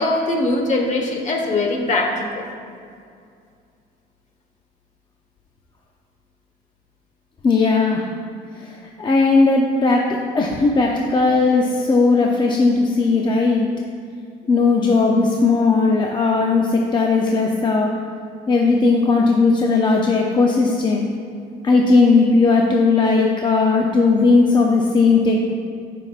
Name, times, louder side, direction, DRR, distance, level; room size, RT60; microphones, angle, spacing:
voice 1, 0.0-2.4, left 2 dB, 45° left, 2 dB, 1.3 m, -21 dB
voice 2, 7.4-8.1 8.6-13.7 14.5-17.9 18.5-21.1 21.6-25.5, left 3 dB, 25° left, 0 dB, 0.6 m, -17 dB
14.5 x 5.8 x 2.5 m, 2.3 s
cardioid pair, 110°, 17 cm